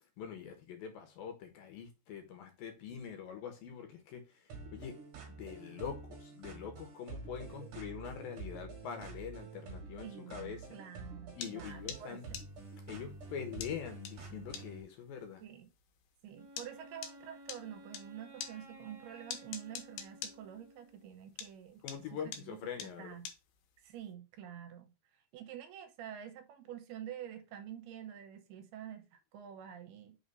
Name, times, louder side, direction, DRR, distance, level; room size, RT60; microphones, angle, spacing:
voice 1, 0.2-4.3 4.7-5.0 5.3-10.8 11.4-12.3 12.9-15.4 21.8-23.2, left 7 dB, 70° left, 2.4 m, -44 dB
sound 1, 4.5-14.8, right 4 dB, 55° right, 2.8 m, -48 dB
voice 2, 10.0-12.4 15.4-15.7 16.2-21.8 22.1-23.3 23.8-24.9 25.3-30.2, right 10 dB, 80° right, 2.8 m, -48 dB
sound 2, 11.4-18.1 18.4-21.1 21.4-24.0, left 7 dB, 90° left, 3.0 m, -45 dB
Wind instrument woodwind instrument, 16.3-21.1, equal, 35° right, 0.3 m, -55 dB
6.5 x 2.9 x 5.4 m
omnidirectional pair, 4.6 m